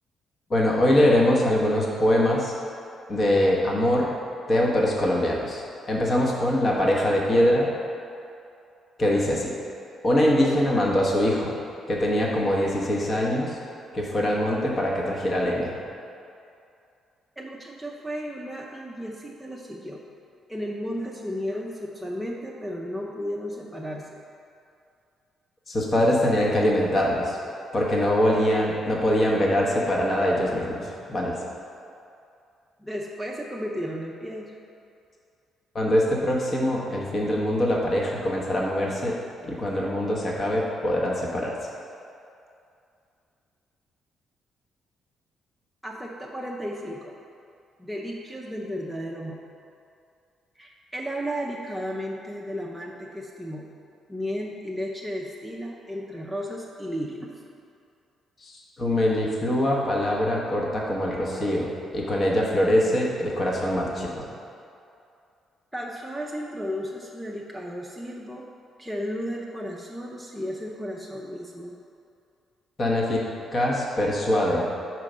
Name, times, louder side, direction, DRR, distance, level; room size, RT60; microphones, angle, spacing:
voice 1, 0.5-2.5 3.1-4.1 4.5-7.7 9.0-9.5 10.0-11.5 11.9-13.6 13.9-15.8 25.7-27.4 27.7-31.3 35.7-39.2 39.4-41.5 58.4-64.2 72.8-73.2 73.5-74.7, left 1 dB, 40° left, -3 dB, 1.0 m, -23 dB
voice 2, 17.4-20.0 20.5-24.2 32.8-34.6 45.8-47.2 47.8-49.4 50.6-53.7 54.1-57.3 65.7-68.5 68.8-71.8, equal, ahead, -3 dB, 0.5 m, -34 dB
4.9 x 4.5 x 5.4 m, 2.5 s
cardioid pair, 90°, 0 cm